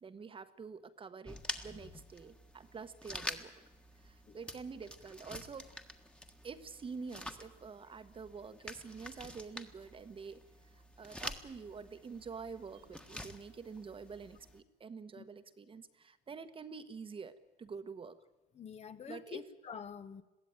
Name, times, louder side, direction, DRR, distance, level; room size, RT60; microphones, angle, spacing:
voice 1, 0.0-3.5 4.0-5.7 6.4-10.4 10.7-18.2 19.1-19.4, right 5 dB, 30° right, 11 dB, 1.3 m, -47 dB
sound 1, 1.2-14.6, left 1 dB, 5° left, 1.6 m, -48 dB
voice 2, 18.5-20.2, left 7 dB, 40° left, 11 dB, 1.2 m, -46 dB
22.0 x 15.5 x 9.1 m, 1.0 s
cardioid pair, 110°, 17 cm